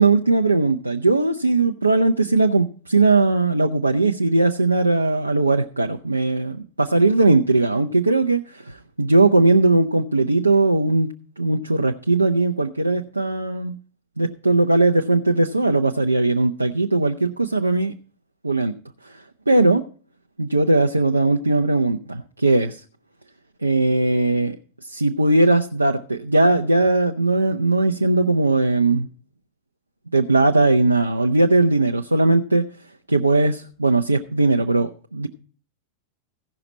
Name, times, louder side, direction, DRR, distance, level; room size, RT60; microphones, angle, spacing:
voice 1, 0.0-11.1 11.4-13.8 14.2-17.9 18.4-18.7 19.1-19.8 20.4-22.7 23.6-24.6 24.8-29.1 30.1-32.7 33.1-35.3, right 2 dB, 85° right, 4 dB, 0.5 m, -19 dB
16.0 x 5.9 x 4.1 m, 0.40 s
figure-of-eight pair, 90°, 0 cm